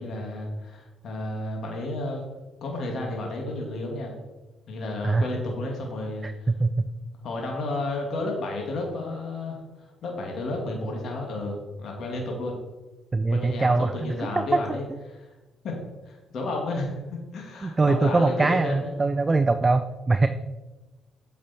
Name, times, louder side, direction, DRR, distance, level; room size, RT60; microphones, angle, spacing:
voice 1, 0.0-2.2 2.6-4.1 4.7-6.5 7.2-9.6 10.0-11.5 11.8-12.6 13.3-15.3 15.6-15.8 16.1-18.9, left 2 dB, 65° left, 0 dB, 2.3 m, -32 dB
voice 2, 6.2-6.8 13.1-14.1 14.5-14.6 17.6-20.3, right 3 dB, 25° right, 9 dB, 0.4 m, -22 dB
8.4 x 6.8 x 4.4 m, 1.1 s
cardioid pair, 90°, 0 cm